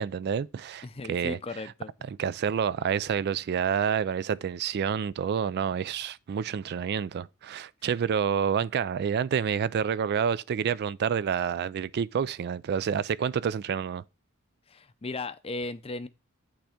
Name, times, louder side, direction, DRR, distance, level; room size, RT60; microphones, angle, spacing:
voice 1, 0.0-1.4 2.2-14.0, right 7 dB, 50° right, 0.3 m, -28 dB
voice 2, 0.8-1.9 14.7-16.1, left 3 dB, 25° left, 0.5 m, -36 dB
8.8 x 3.4 x 5.0 m
head